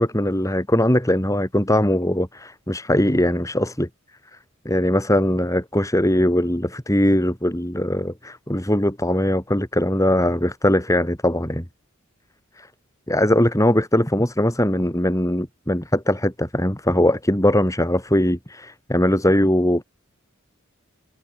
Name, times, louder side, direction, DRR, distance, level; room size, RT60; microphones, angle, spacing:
voice 1, 0.0-3.9 4.6-11.6 12.6-12.7 13.1-19.8, left 1 dB, 15° left, 5.2 m, -20 dB
head